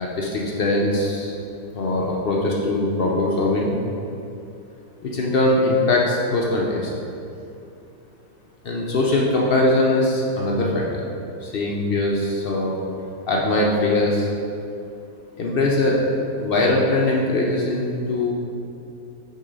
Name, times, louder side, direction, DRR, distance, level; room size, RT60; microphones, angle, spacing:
voice 1, 0.0-1.3 1.7-3.7 5.0-6.9 8.6-11.0 11.4-12.7 13.3-14.3 15.4-16.0 16.4-18.3, left 2 dB, 85° left, -3 dB, 0.5 m, -21 dB
6.7 x 3.8 x 5.0 m, 2.6 s
omnidirectional pair, 1.8 m